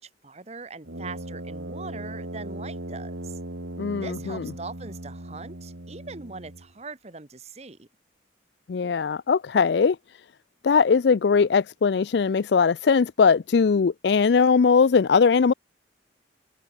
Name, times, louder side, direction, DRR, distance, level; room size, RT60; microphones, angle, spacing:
voice 1, 0.0-3.4 3.9-7.9, right 4 dB, 35° right, 1.1 m, -41 dB
Brass instrument, 0.8-6.7, right 1 dB, 75° right, 2.5 m, -38 dB
voice 2, 3.8-4.5 8.7-10.0 10.6-15.5, left 5 dB, 65° left, 0.4 m, -20 dB
head